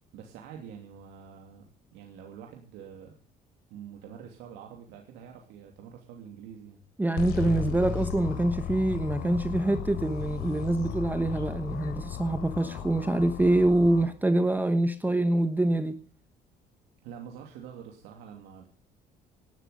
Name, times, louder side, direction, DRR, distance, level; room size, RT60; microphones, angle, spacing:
voice 1, 0.1-3.1 3.7-6.8 7.6-7.9 17.0-18.7, right 8 dB, 90° right, 2.9 m, -46 dB
voice 2, 7.0-16.0, right 1 dB, 10° right, 1.1 m, -25 dB
sound 1, 7.2-14.0, left 9 dB, 80° left, 4.0 m, -35 dB
18.0 x 12.0 x 5.3 m
cardioid pair, 110°, 17 cm